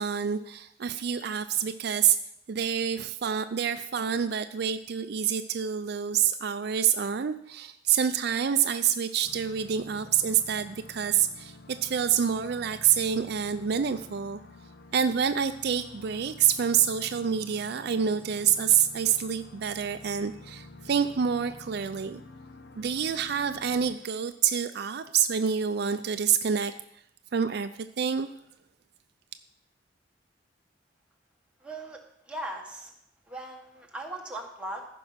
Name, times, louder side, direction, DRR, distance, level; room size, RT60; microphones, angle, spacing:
voice 1, 0.0-2.2 2.5-11.6 11.8-14.4 14.9-22.2 22.8-26.7 27.3-27.7 28.0-28.3, right 8 dB, 60° right, 10 dB, 0.4 m, -27 dB
sound 1, 9.2-24.0, left 2 dB, 70° left, 0.8 m, -49 dB
voice 2, 31.6-32.9 33.3-34.9, right 1 dB, 5° right, 0 dB, 1.5 m, -39 dB
14.5 x 5.4 x 5.8 m, 0.76 s
head